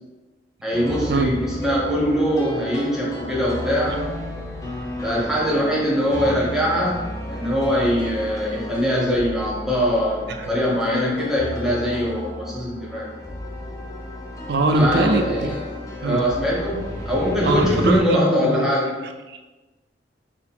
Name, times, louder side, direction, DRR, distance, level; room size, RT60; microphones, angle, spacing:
voice 1, 0.6-4.1 5.0-13.1 14.7-15.6 16.0-19.0, equal, 5° right, -5 dB, 0.9 m, -22 dB
sound 1, 0.7-18.0, left 1 dB, 20° left, 0.5 m, -33 dB
voice 2, 14.5-15.6 16.0-16.2 17.4-18.7 19.3-19.5, right 2 dB, 60° right, 6 dB, 0.4 m, -22 dB
4.6 x 2.0 x 3.5 m, 1.2 s
head